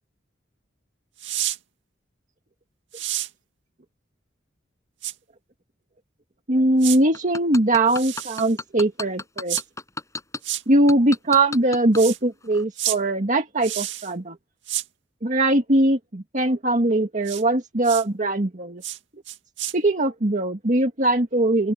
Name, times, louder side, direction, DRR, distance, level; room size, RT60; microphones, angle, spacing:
sound 1, 1.2-1.6 2.9-3.3 5.0-5.1 6.8-7.0 7.9-8.5 9.5-9.6 10.4-10.6 11.9-12.2 12.8-13.0 13.6-14.1 14.7-14.9 17.2-17.4 17.8-18.0 18.8-19.0 19.3-19.7, right 13 dB, 80° right, 2.3 m, -29 dB
voice 1, 6.5-9.6 10.7-14.4 15.2-18.8 19.7-21.7, right 2 dB, 45° right, 1.7 m, -21 dB
sound 2, 7.1-10.4 10.9-12.0 12.5-12.6, left 3 dB, 15° left, 6.5 m, -32 dB
open air
head